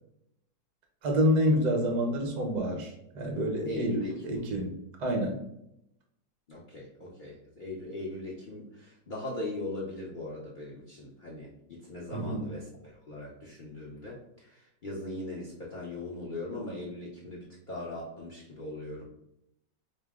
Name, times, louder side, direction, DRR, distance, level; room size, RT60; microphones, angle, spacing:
voice 1, 1.0-5.4 12.1-12.4, equal, 55° right, 1 dB, 0.5 m, -28 dB
voice 2, 3.6-4.3 6.5-19.0, left 2 dB, 75° left, -5 dB, 0.4 m, -40 dB
5.4 x 2.0 x 3.5 m, 0.81 s
omnidirectional pair, 2.0 m